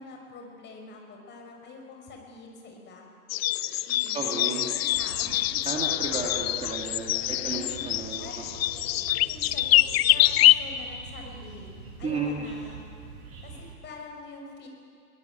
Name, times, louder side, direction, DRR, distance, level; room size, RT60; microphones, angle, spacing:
voice 1, 0.0-3.1 3.9-5.7 7.2-7.9 8.2-8.3 8.7-9.8 10.1-13.0 13.4-14.7, left 3 dB, 25° left, 2 dB, 5.5 m, -45 dB
sound 1, 3.3-10.5, left 16 dB, 40° left, 0.6 m, -24 dB
voice 2, 4.1-4.7 5.7-8.2 12.0-12.5, right 4 dB, 15° right, -1 dB, 2.8 m, -33 dB
sound 2, 4.9-13.8, right 4 dB, 30° right, 7.7 m, -45 dB
22.0 x 18.5 x 9.4 m, 2.3 s
figure-of-eight pair, 110°, 46 cm